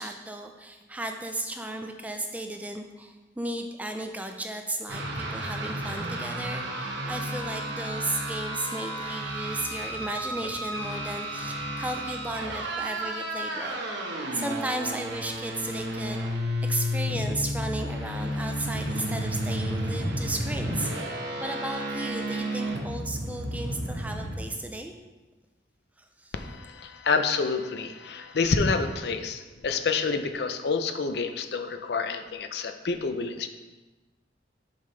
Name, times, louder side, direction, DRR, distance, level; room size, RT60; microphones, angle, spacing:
voice 1, 0.0-13.8 14.3-16.2 16.6-21.1 21.4-24.9 26.0-26.3, right 1 dB, 10° right, 5 dB, 0.4 m, -35 dB
sound 1, 4.9-24.4, equal, 75° right, 1.1 m, -32 dB
voice 2, 26.3-33.5, left 4 dB, 60° left, 8 dB, 0.5 m, -28 dB
7.1 x 5.5 x 3.3 m, 1.2 s
head